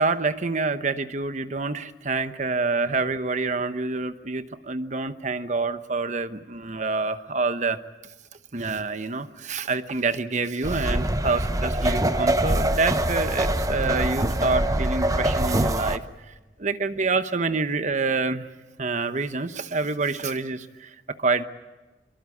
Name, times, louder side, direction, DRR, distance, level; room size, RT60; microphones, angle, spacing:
voice 1, 0.0-7.8 8.5-16.3 16.6-18.5 18.8-21.4, right 3 dB, 45° right, 11 dB, 1.0 m, -27 dB
sound 1, 10.6-16.0, right 1 dB, 20° right, 0.9 m, -24 dB
24.0 x 22.0 x 8.5 m, 1.1 s
head